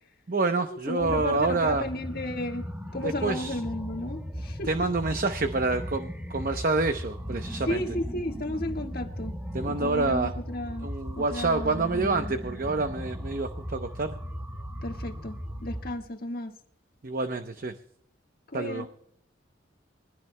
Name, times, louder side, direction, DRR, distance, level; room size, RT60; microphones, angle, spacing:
voice 1, 0.3-1.9 3.0-3.6 4.6-8.0 9.5-10.4 10.8-14.2 17.0-17.7 18.5-18.9, right 3 dB, 45° right, 0.8 m, -28 dB
voice 2, 0.9-2.6 2.9-4.7 7.7-9.3 9.7-10.9 11.3-12.3 14.8-15.3 15.6-16.5 18.5-18.9, left 1 dB, 50° left, 1.6 m, -33 dB
sound 1, 1.0-16.0, equal, 10° right, 1.1 m, -37 dB
23.0 x 15.5 x 2.2 m
head